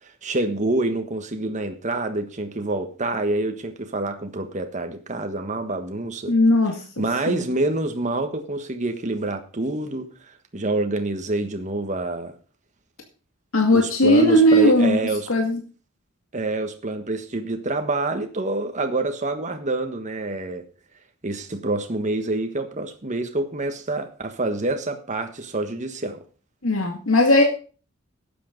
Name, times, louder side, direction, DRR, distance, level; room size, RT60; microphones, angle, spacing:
voice 1, 0.0-6.4 7.0-12.3 13.7-15.3 16.3-20.7 21.2-26.2, right 2 dB, 35° right, 1.4 m, -27 dB
voice 2, 6.3-6.8 7.3-7.4 13.5-15.0 15.3-15.6 26.6-27.4, left 1 dB, 85° left, 2.2 m, -17 dB
12.0 x 8.6 x 5.2 m
head